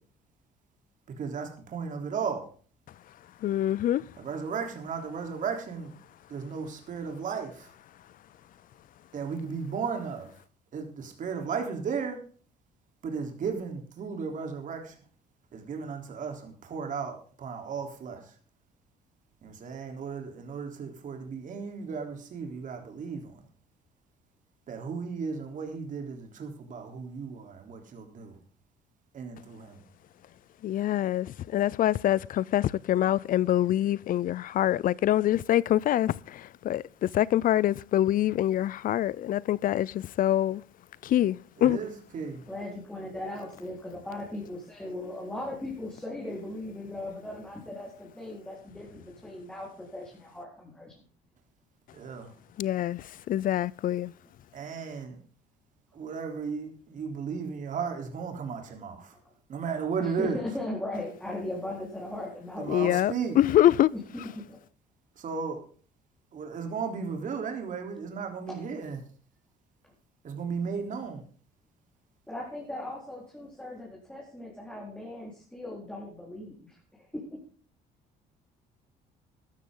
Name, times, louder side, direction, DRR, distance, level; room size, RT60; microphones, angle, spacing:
voice 1, 1.2-2.5 4.2-5.9 6.3-7.7 9.1-10.3 10.7-12.2 13.0-15.0 15.5-18.3 19.4-23.4 24.7-28.4 29.1-29.8 41.6-42.4 51.9-52.3 54.5-55.2 55.9-59.2 59.5-60.4 62.6-63.4 65.2-65.6 66.3-69.0 70.2-71.2, right 5 dB, 50° right, 3.6 m, -35 dB
voice 2, 3.4-4.0 30.6-40.6 41.0-41.8 52.6-54.1 62.7-63.9, left 12 dB, 55° left, 0.5 m, -25 dB
voice 3, 42.5-51.0 60.0-62.9 63.9-64.0 64.4-64.6 68.5-68.6 72.3-77.4, left 1 dB, 5° left, 4.2 m, -38 dB
14.0 x 12.5 x 3.8 m
cardioid pair, 110°, 17 cm